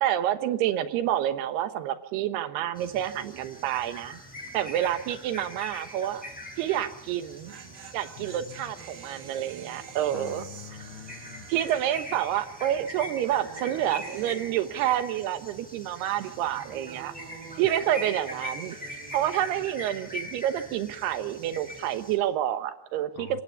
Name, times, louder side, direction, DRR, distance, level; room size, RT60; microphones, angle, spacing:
voice 1, 0.0-4.2 4.5-6.2 6.6-7.5 7.9-10.4 11.5-17.1 17.6-23.4, right 11 dB, 85° right, 11 dB, 3.2 m, -28 dB
sound 1, 2.8-22.2, left 1 dB, ahead, 5.9 m, -43 dB
sound 2, 3.7-4.1 4.3-4.4 7.1-15.4 15.7-19.7, right 7 dB, 70° right, 3.4 m, -48 dB
voice 2, 8.2-8.7 10.1-11.5 23.2-23.4, left 11 dB, 75° left, 12 dB, 2.9 m, -45 dB
28.0 x 17.0 x 7.1 m, 0.83 s
omnidirectional pair, 4.6 m